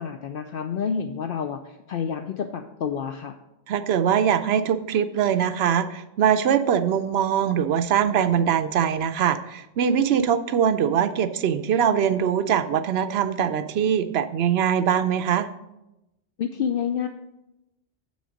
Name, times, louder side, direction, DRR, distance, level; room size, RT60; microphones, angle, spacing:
voice 1, 0.0-3.3 16.4-17.1, left 7 dB, 65° left, 7 dB, 0.7 m, -29 dB
voice 2, 3.7-15.5, right 8 dB, 75° right, 10 dB, 0.8 m, -22 dB
8.0 x 6.3 x 5.1 m, 0.92 s
omnidirectional pair, 1.1 m